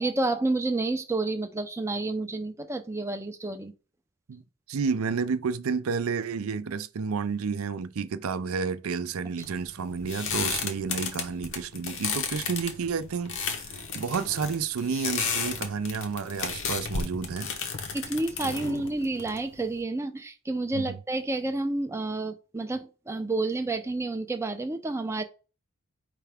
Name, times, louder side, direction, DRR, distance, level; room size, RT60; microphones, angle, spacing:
voice 1, 0.0-3.7 17.9-25.2, right 2 dB, 15° right, 0.5 m, -30 dB
voice 2, 4.7-17.5 18.5-18.8 20.7-21.0, right 5 dB, 70° right, 0.5 m, -31 dB
sound 1, 9.4-19.8, left 5 dB, 60° left, 0.9 m, -33 dB
4.8 x 3.3 x 3.4 m
head